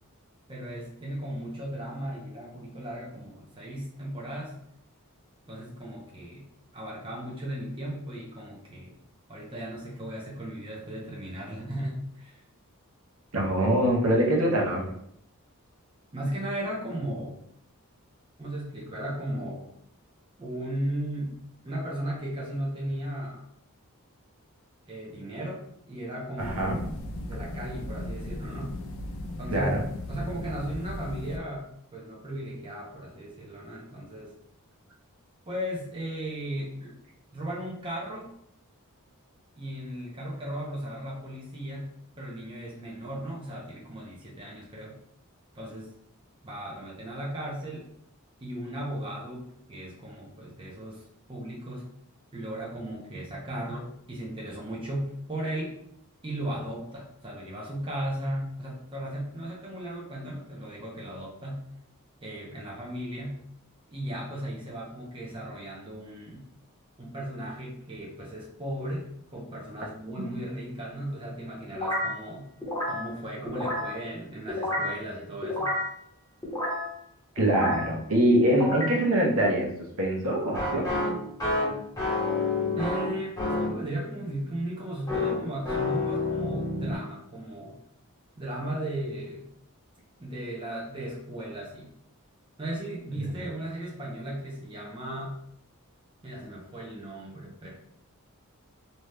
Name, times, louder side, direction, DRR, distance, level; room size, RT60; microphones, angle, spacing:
voice 1, 0.5-4.6 5.5-6.5 6.7-8.9 9.3-12.4 16.1-17.4 18.4-19.7 20.4-23.5 24.9-26.7 27.2-28.8 29.4-29.8 30.1-34.3 35.5-37.0 37.3-38.3 39.6-45.0 45.5-45.9 46.4-47.9 48.4-51.9 52.3-55.8 56.2-61.7 62.2-63.5 63.9-66.5 67.0-72.5 72.9-75.8 82.8-87.8 88.4-89.5 90.2-91.9 92.6-95.4 96.2-97.7, right 1 dB, 25° right, -4 dB, 0.6 m, -36 dB
voice 2, 13.3-14.8 26.4-26.8 29.5-29.8 77.4-79.7 80.0-80.9, right 1 dB, 70° right, -2 dB, 0.8 m, -24 dB
sound 1, 26.4-31.4, left 1 dB, 60° left, 0.4 m, -37 dB
sound 2, 71.8-72.2 72.6-73.1 73.5-74.0 74.5-75.0 75.4-75.9 76.4-76.9 77.4-77.9 78.4-79.0 80.5-83.8 85.1-86.9, left 2 dB, 15° left, 0.9 m, -29 dB
2.7 x 2.2 x 3.2 m, 0.72 s
head